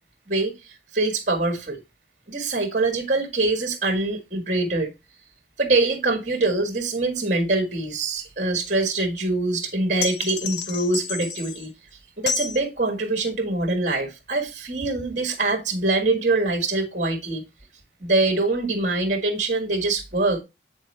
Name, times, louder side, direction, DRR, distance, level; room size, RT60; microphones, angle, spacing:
voice 1, 0.9-1.8 2.3-4.9 5.6-11.7 12.2-17.4 18.0-20.4, right 2 dB, 40° right, 1.5 m, -24 dB
sound 1, 10.0-11.7 12.3-12.6, left 6 dB, 75° left, 0.7 m, -30 dB
8.8 x 4.3 x 3.2 m
head